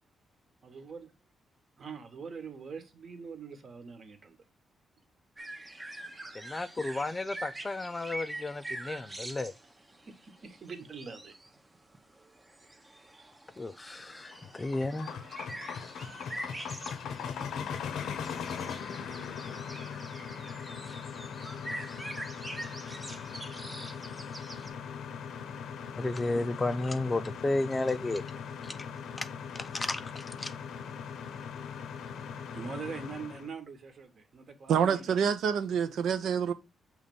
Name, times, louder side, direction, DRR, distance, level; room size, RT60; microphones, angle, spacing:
voice 1, 0.6-1.1 1.8-4.4 9.4-9.5 10.1-11.3 32.3-35.2, right 5 dB, 40° right, 1.2 m, -43 dB
sound 1, 5.4-24.7, right 1 dB, 15° right, 0.7 m, -45 dB
voice 2, 6.3-9.5 13.6-15.1 26.0-28.2 28.6-28.8 29.2-29.3 29.5-30.5, left 2 dB, 20° left, 0.4 m, -33 dB
sound 2, 14.1-33.5, left 7 dB, 80° left, 0.7 m, -40 dB
voice 3, 34.7-36.5, right 7 dB, 75° right, 0.7 m, -27 dB
6.6 x 3.2 x 5.2 m
wide cardioid pair, 155°, 0 cm